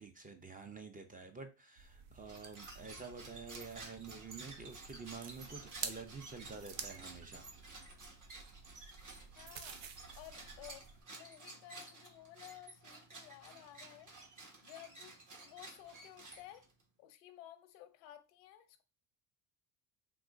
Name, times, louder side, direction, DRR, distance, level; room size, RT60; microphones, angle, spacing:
voice 1, 0.0-7.5, right 4 dB, 20° right, 0.4 m, -49 dB
sound 1, 1.8-11.0, right 6 dB, 70° right, 0.7 m, -50 dB
sound 2, 2.2-16.8, right 3 dB, 40° right, 1.3 m, -53 dB
voice 2, 9.4-9.8 10.2-10.9 11.1-14.1 14.6-15.2 15.4-16.7 17.0-18.8, left 13 dB, 90° left, 0.7 m, -55 dB
3.6 x 2.9 x 2.5 m
supercardioid pair, 80°, 49 cm